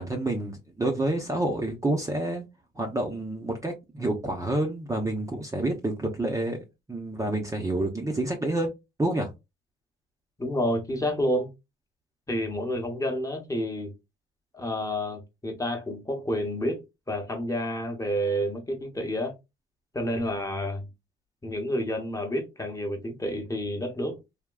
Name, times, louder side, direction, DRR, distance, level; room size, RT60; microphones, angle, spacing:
voice 1, 0.0-2.4 2.8-6.6 6.9-8.7 9.0-9.3, right 1 dB, 15° right, 0.7 m, -28 dB
voice 2, 10.4-11.5 12.3-13.9 14.5-19.3 19.9-20.9 21.4-24.2, equal, 15° left, 1.0 m, -29 dB
3.5 x 2.2 x 2.2 m
cardioid pair, 90°, 20 cm